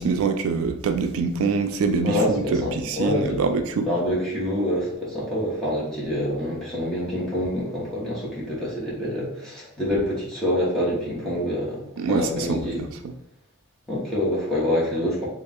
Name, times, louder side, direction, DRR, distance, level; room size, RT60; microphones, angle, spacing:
voice 1, 0.0-3.9 12.0-13.1, right 4 dB, 80° right, 7 dB, 0.3 m, -25 dB
voice 2, 2.0-3.4 3.8-12.8 13.9-15.3, left 1 dB, ahead, -7 dB, 1.1 m, -26 dB
3.3 x 2.5 x 3.4 m, 0.80 s
head